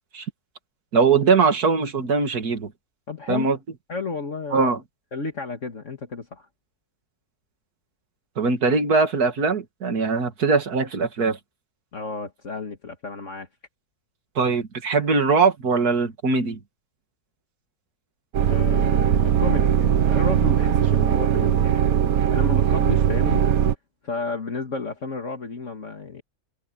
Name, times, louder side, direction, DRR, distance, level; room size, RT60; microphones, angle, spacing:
voice 1, 0.9-2.7 3.3-3.6 4.5-4.8 8.4-11.4 14.4-16.6, right 4 dB, 85° right, 2.5 m, -21 dB
voice 2, 3.1-3.5 3.9-4.7 5.1-6.5 11.9-13.5 18.4-22.0 22.3-23.4 24.0-26.2, left 4 dB, 55° left, 2.3 m, -32 dB
sound 1, 18.3-23.7, right 9 dB, 70° right, 1.4 m, -20 dB
omnidirectional pair, 1.6 m